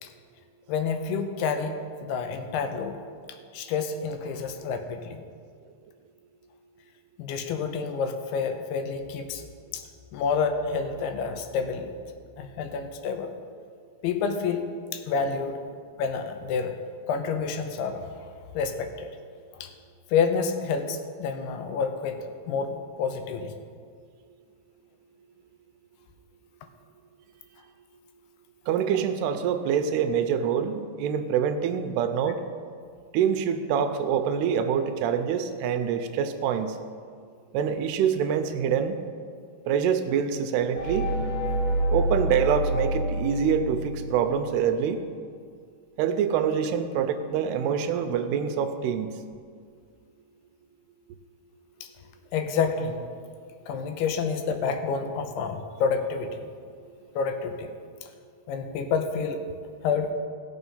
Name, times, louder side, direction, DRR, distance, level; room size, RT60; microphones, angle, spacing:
voice 1, 0.7-3.0 3.5-5.2 7.2-9.4 9.7-9.8 10.1-11.9 12.4-13.3 14.0-14.7 14.9-15.6 16.0-16.8 17.1-18.3 18.5-19.1 19.6-19.7 20.1-22.2 22.5-22.7 23.0-23.5 51.8-51.9 52.3-53.0 53.7-56.5 57.2-57.7 58.5-59.4 59.8-60.1, left 5 dB, 80° left, 6 dB, 2.8 m, -28 dB
voice 2, 28.7-32.4 33.1-36.8 37.5-39.0 39.7-41.1 41.9-45.0 46.0-49.1, right 7 dB, 90° right, 8 dB, 2.7 m, -25 dB
sound 1, 40.8-44.5, right 1 dB, 65° left, 2.7 m, -28 dB
16.0 x 6.7 x 5.5 m, 2.1 s
omnidirectional pair, 4.7 m